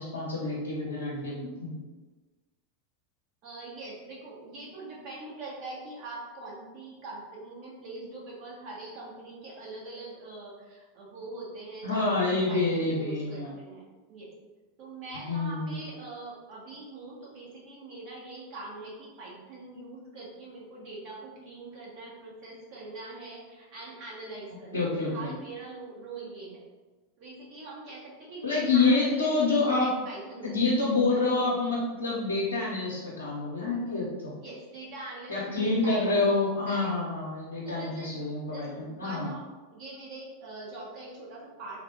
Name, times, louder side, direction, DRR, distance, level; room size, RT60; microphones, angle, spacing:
voice 1, 0.0-1.8 11.8-13.5 15.3-15.7 24.7-25.3 28.4-29.9 30.4-34.3 35.3-39.3, left 3 dB, 80° left, -6 dB, 0.6 m, -27 dB
voice 2, 3.4-12.1 12.5-14.3 14.8-26.6 27.2-30.6 34.4-36.3 36.7-36.9 37.6-39.4 39.7-41.8, right 2 dB, 50° right, -5 dB, 1.2 m, -43 dB
3.2 x 2.1 x 3.5 m, 1.2 s
figure-of-eight pair, 90°, 0 cm